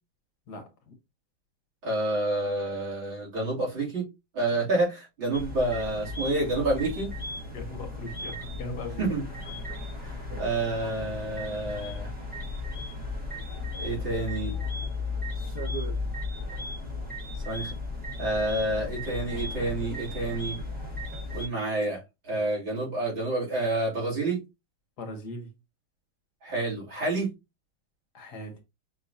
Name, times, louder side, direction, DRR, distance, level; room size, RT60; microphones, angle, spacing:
voice 1, 0.5-0.9 7.5-9.1 25.0-25.5 28.1-28.6, left 2 dB, 55° left, 1.6 m, -39 dB
voice 2, 1.8-4.1 4.3-7.1 9.0-9.2 10.0-12.1 13.8-14.5 17.4-17.7 18.2-20.6 21.3-24.4 26.4-27.3, right 2 dB, 65° right, 3.8 m, -29 dB
sound 1, 5.3-21.5, left 2 dB, 5° right, 1.0 m, -35 dB
6.3 x 3.1 x 2.7 m
omnidirectional pair, 2.3 m